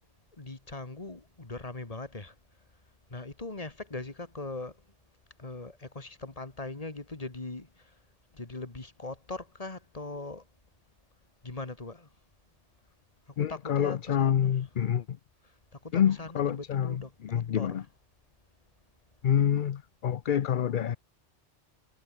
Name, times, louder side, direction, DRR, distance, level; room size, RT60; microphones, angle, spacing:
voice 1, 0.4-2.3 3.1-4.7 5.4-7.7 8.3-10.4 11.4-12.1 13.4-14.6 15.8-17.8, left 2 dB, 30° left, 2.2 m, -40 dB
voice 2, 13.4-15.2 15.9-17.8 19.2-21.0, left 9 dB, 50° left, 0.7 m, -27 dB
omnidirectional pair, 1.2 m